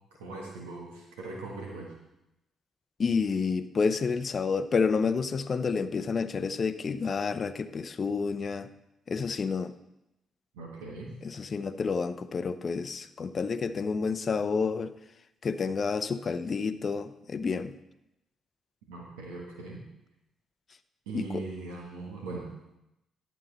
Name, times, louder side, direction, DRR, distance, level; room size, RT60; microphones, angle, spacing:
voice 1, 0.2-1.9 10.5-11.1 18.9-19.8 21.1-22.5, right 3 dB, 85° right, -1 dB, 1.4 m, -40 dB
voice 2, 3.0-8.7 9.1-9.7 11.2-14.9 15.4-17.7 21.1-21.4, left 5 dB, 50° left, 12 dB, 0.6 m, -29 dB
11.5 x 7.3 x 4.0 m, 0.89 s
hypercardioid pair, 45°, 0 cm